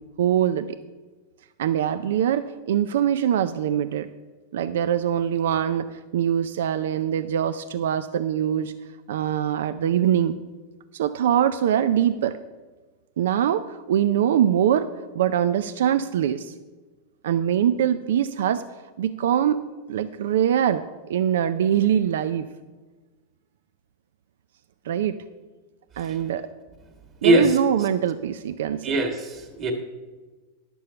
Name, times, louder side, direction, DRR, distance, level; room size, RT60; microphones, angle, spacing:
voice 1, 0.2-0.7 1.6-4.1 4.5-8.7 9.1-10.3 10.9-12.4 13.2-14.9 15.1-16.5 17.2-18.6 19.0-22.5 24.8-25.2 26.0-26.5 27.2-29.0, right 9 dB, 80° right, 11 dB, 0.4 m, -23 dB
voice 2, 27.2-27.6 28.8-29.7, right 1 dB, 30° right, 4 dB, 1.6 m, -21 dB
11.0 x 6.9 x 5.6 m, 1.3 s
supercardioid pair, 145°, 0 cm